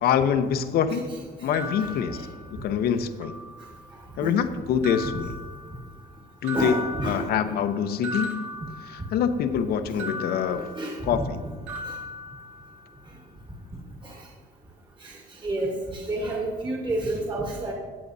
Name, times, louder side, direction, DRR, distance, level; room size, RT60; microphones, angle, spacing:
voice 1, 0.0-1.1 1.4-2.2 2.5-3.3 4.2-5.4 6.4-6.8 7.0-8.5 8.9-10.7 11.1-11.4, left 8 dB, 65° left, 9 dB, 0.7 m, -25 dB
voice 2, 0.9-1.5 1.8-2.3 4.2-4.4 6.5-7.6 10.6-11.5 11.8-12.0 14.0-14.3 15.0-17.7, right 2 dB, 30° right, -1 dB, 1.6 m, -31 dB
sound 1, 1.5-2.8 3.2-4.0 4.8-6.1 6.4-9.4 10.0-11.4 11.7-13.0, left 1 dB, 80° right, 2.9 m, -38 dB
16.5 x 8.3 x 2.7 m, 1.5 s
cardioid pair, 110°, 17 cm